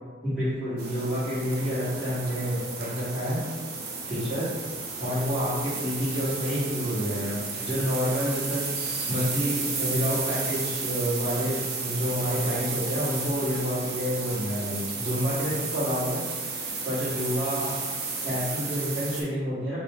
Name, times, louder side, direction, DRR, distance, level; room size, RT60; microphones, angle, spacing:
voice 1, 0.2-3.4 4.1-4.5 5.0-8.6 9.1-16.2 16.8-17.7 18.2-19.8, equal, ahead, -15 dB, 1.4 m, -28 dB
sound 1, 0.8-19.2, right 4 dB, 55° right, 0.6 m, -33 dB
4.1 x 2.1 x 3.6 m, 1.5 s
head